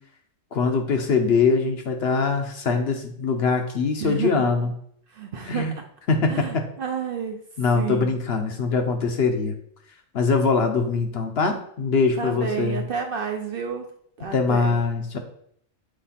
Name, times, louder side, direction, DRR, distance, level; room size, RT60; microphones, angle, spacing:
voice 1, 0.5-4.7 5.5-5.8 6.1-6.6 7.6-9.5 10.1-12.8 14.3-15.2, left 4 dB, 55° left, 5 dB, 0.9 m, -22 dB
voice 2, 4.0-4.3 5.1-5.7 6.3-7.4 7.7-8.1 12.2-13.9 14.2-14.8, right 7 dB, 55° right, 3 dB, 0.7 m, -30 dB
7.4 x 3.3 x 4.1 m, 0.66 s
omnidirectional pair, 1.3 m